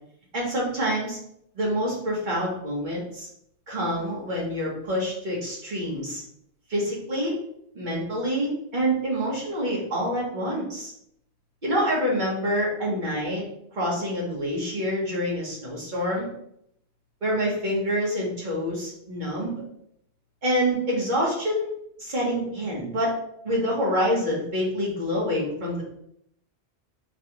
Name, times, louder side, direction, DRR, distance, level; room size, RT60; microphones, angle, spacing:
voice 1, 0.3-1.2 1.5-3.3 3.7-6.2 6.7-7.3 7.7-10.9 11.6-13.4 13.7-16.3 17.2-19.6 20.4-21.7 22.0-23.1 23.4-25.8, equal, 45° right, -4 dB, 1.3 m, -26 dB
4.8 x 2.4 x 2.9 m, 0.73 s
omnidirectional pair, 1.1 m